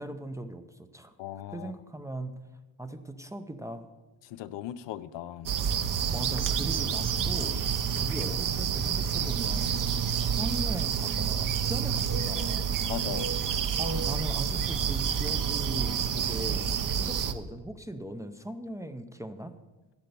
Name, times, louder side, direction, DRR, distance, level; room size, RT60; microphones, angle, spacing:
voice 1, 0.0-1.1 1.5-2.4 2.8-3.9 6.1-7.6 8.0-12.8 13.8-19.5, right 1 dB, 5° right, 7 dB, 0.6 m, -39 dB
voice 2, 1.2-1.7 4.2-5.5 12.9-13.3, left 12 dB, 65° left, 12 dB, 0.7 m, -38 dB
sound 1, 5.5-17.3, right 7 dB, 45° right, 0.8 m, -28 dB
12.0 x 9.0 x 6.8 m, 1.2 s
cardioid pair, 140°, 47 cm